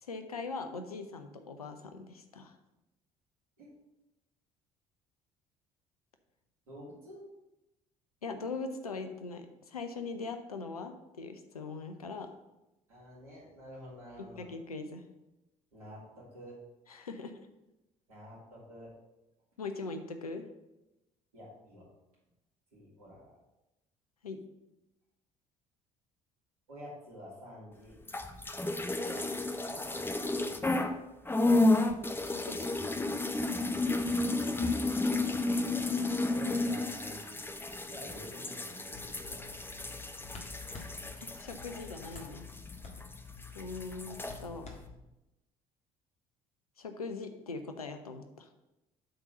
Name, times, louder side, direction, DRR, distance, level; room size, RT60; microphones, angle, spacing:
voice 1, 0.0-2.5 8.2-12.3 14.4-15.1 16.9-17.4 19.6-20.4 24.2-24.4 32.2-32.7 41.2-42.5 43.5-44.7 46.8-48.5, left 4 dB, 85° left, 7 dB, 0.6 m, -41 dB
voice 2, 6.7-7.2 12.9-14.5 15.7-16.5 18.1-18.9 21.3-21.8 22.7-23.3 26.7-28.0 29.0-29.3 29.7-31.0 34.4-34.8 35.6-35.9 36.3-37.4 37.9-39.5 44.0-44.1, equal, 80° right, -6 dB, 3.0 m, -49 dB
sound 1, 28.0-31.0 31.3-43.2 43.4-44.4, left 2 dB, 10° left, 0.7 m, -32 dB
sound 2, 38.9-45.0, left 4 dB, 35° left, 1.7 m, -49 dB
7.9 x 3.9 x 6.6 m, 0.97 s
figure-of-eight pair, 55°, 19 cm